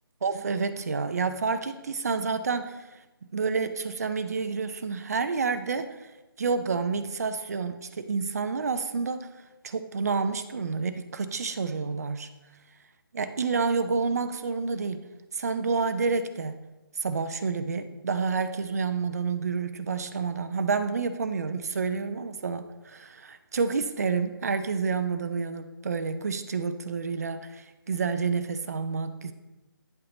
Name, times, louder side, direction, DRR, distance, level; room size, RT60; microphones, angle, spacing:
voice 1, 0.2-3.0 3.3-6.1 6.4-9.3 9.6-12.3 13.1-15.0 15.3-16.6 17.0-29.3, right 5 dB, 40° right, 10 dB, 0.5 m, -29 dB
9.5 x 5.6 x 4.0 m, 1.1 s
figure-of-eight pair, 150°, 12 cm